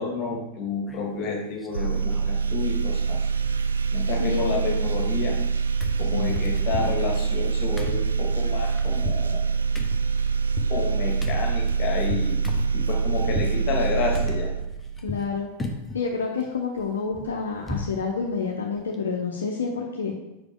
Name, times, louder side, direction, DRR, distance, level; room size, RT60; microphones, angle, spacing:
voice 1, 0.0-3.3 3.9-5.4 6.0-9.4 10.7-12.4 12.7-14.5, left 4 dB, 40° left, 0 dB, 1.6 m, -30 dB
sound 1, 0.9-1.2 1.6-2.4 2.7-2.8 3.1-3.9 4.2-5.5 5.8-13.6 14.1-15.3 15.6-16.0 16.4-18.0 18.3-18.4 18.8-19.0, left 2 dB, 10° left, 0.8 m, -37 dB
sound 2, 1.7-15.1, right 5 dB, 70° right, 0.4 m, -25 dB
voice 2, 4.2-4.9 6.1-6.4 15.0-15.5 15.9-20.1, left 5 dB, 70° left, 1 dB, 0.6 m, -28 dB
5.5 x 4.9 x 3.7 m, 0.98 s
figure-of-eight pair, 90°, 0 cm